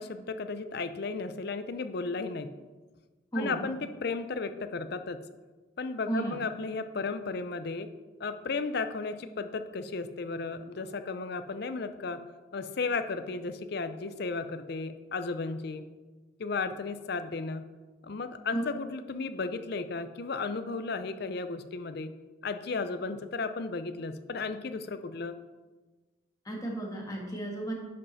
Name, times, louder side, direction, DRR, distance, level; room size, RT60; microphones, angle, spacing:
voice 1, 0.0-2.5 3.4-5.2 5.8-7.9 8.2-12.2 12.5-15.9 16.4-17.7 18.0-22.1 22.4-25.4, left 4 dB, 50° left, 10 dB, 0.5 m, -34 dB
voice 2, 3.3-3.7 6.1-6.4 18.5-18.6 26.4-27.7, right 2 dB, 20° left, -1 dB, 1.5 m, -33 dB
10.5 x 5.6 x 4.1 m, 1.3 s
head